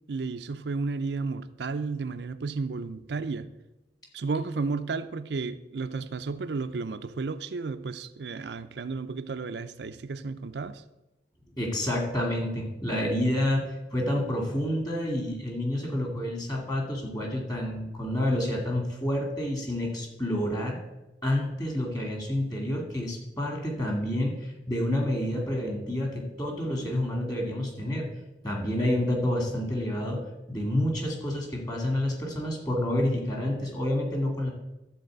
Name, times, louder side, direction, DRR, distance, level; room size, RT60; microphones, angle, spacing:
voice 1, 0.1-3.5 4.1-10.8, right 4 dB, 75° right, 0.5 m, -33 dB
voice 2, 11.6-20.8 21.2-28.1 28.4-34.5, left 1 dB, 20° left, 2.2 m, -29 dB
12.5 x 4.2 x 7.9 m
head